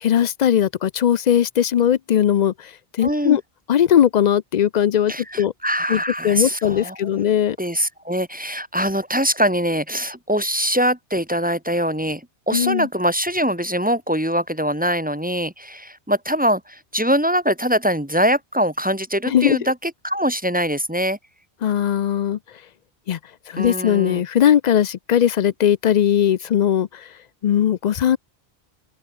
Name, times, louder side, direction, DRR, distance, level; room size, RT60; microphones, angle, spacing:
voice 1, 0.0-3.4 3.7-5.5 5.9-7.6 12.5-12.9 19.3-19.6 21.6-22.4 23.1-23.2 23.5-27.1 27.4-28.2, left 10 dB, 55° left, 0.5 m, -19 dB
voice 2, 3.0-3.4 5.1-7.0 7.6-21.2 23.6-24.2, equal, 10° right, 1.6 m, -23 dB
open air
omnidirectional pair, 1.1 m